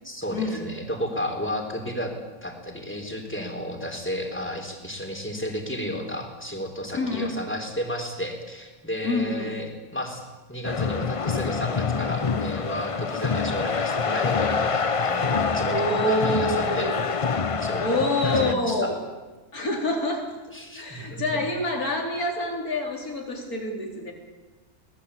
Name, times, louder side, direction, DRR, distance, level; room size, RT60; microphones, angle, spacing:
voice 1, 0.0-2.1 2.4-16.9 17.6-18.9 20.5-21.4, equal, 5° left, 2 dB, 3.8 m, -32 dB
voice 2, 6.9-7.4 9.0-9.5 15.7-17.1 17.8-19.0 19.5-20.3 20.7-24.1, left 1 dB, 65° left, 2 dB, 4.3 m, -27 dB
sound 1, 10.6-18.5, left 5 dB, 40° left, 0.5 m, -26 dB
22.5 x 18.5 x 8.5 m, 1.2 s
omnidirectional pair, 1.6 m